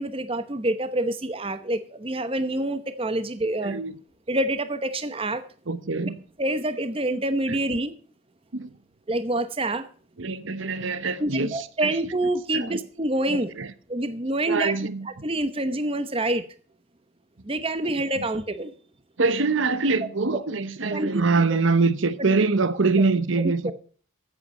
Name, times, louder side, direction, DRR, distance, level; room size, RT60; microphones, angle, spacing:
voice 1, 0.0-3.8 4.3-5.4 6.4-7.9 9.1-9.9 11.2-13.5 13.9-14.7 15.2-16.4 17.4-18.7 20.9-21.2 23.4-23.7, right 1 dB, 25° right, 0.9 m, -27 dB
voice 2, 3.6-4.0 5.7-6.2 7.5-7.6 8.5-8.7 10.2-12.0 12.5-12.8 13.3-13.7 14.5-15.1 17.8-18.3 19.2-23.7, right 3 dB, 70° right, 0.9 m, -24 dB
14.5 x 8.2 x 5.5 m
head